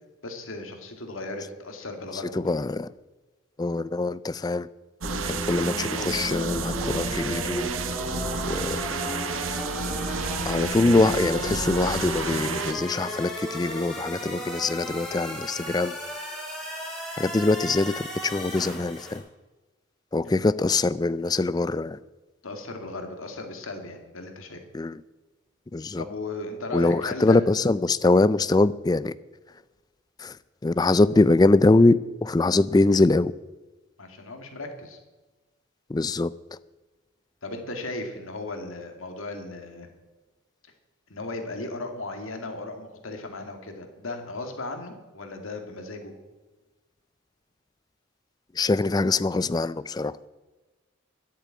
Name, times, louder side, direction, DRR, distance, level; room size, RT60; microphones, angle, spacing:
voice 1, 0.2-2.5 20.2-20.4 22.4-24.6 26.0-27.4 34.0-35.0 37.4-39.9 41.1-46.1, left 2 dB, 80° left, 2.2 m, -36 dB
voice 2, 2.3-2.9 3.6-4.7 5.3-7.7 8.4-8.8 10.4-16.0 17.2-19.2 20.1-22.0 24.7-25.0 25.7-26.0 26.7-29.1 30.2-30.4 30.6-32.0 32.2-33.3 35.9-36.6 48.5-50.2, left 2 dB, 20° left, 0.3 m, -23 dB
sound 1, 5.0-19.2, left 1 dB, ahead, 2.8 m, -35 dB
sound 2, 5.0-12.7, right 4 dB, 75° right, 0.9 m, -30 dB
10.5 x 8.5 x 8.6 m
head